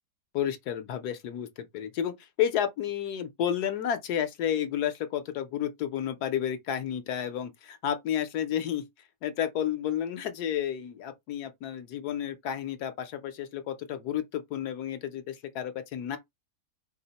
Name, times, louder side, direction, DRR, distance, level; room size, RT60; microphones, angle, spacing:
voice 1, 0.3-8.8 9.2-16.2, left 10 dB, 70° left, 1.2 m, -31 dB
4.7 x 2.1 x 4.0 m
omnidirectional pair, 1.8 m